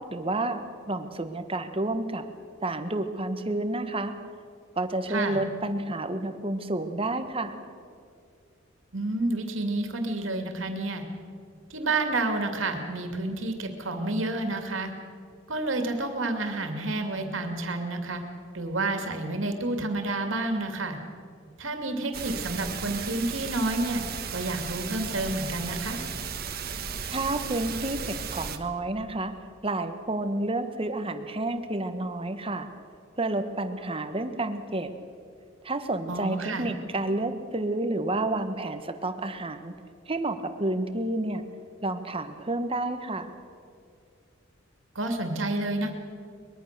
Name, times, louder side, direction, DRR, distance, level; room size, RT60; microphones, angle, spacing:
voice 1, 0.0-2.2 2.6-4.1 4.8-7.6 27.1-29.3 29.6-32.7 33.2-34.9 35.6-39.7 40.1-41.4 41.8-43.3, right 2 dB, 25° right, 8 dB, 1.4 m, -30 dB
voice 2, 8.9-11.0 11.7-14.9 15.5-18.2 18.5-21.0 21.6-24.0 24.3-26.0 36.1-36.7 44.9-45.9, right 2 dB, 70° right, 5 dB, 2.7 m, -29 dB
sound 1, 22.1-28.6, right 6 dB, 50° right, 1.5 m, -35 dB
23.0 x 21.5 x 6.8 m, 2.3 s
head